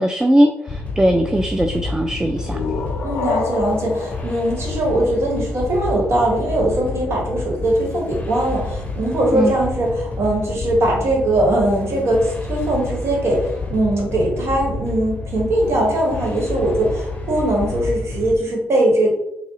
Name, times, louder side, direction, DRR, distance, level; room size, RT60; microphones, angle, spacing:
voice 1, 0.0-2.6 9.3-9.5, right 1 dB, 10° right, 5 dB, 0.3 m, -19 dB
sound 1, 0.7-18.4, left 3 dB, 25° left, 0.7 m, -29 dB
sound 2, 2.2-5.8, left 5 dB, 75° left, 0.4 m, -29 dB
voice 2, 3.0-19.1, right 1 dB, 60° right, -1 dB, 1.1 m, -20 dB
3.5 x 2.0 x 2.8 m, 0.81 s
supercardioid pair, 50°, 5 cm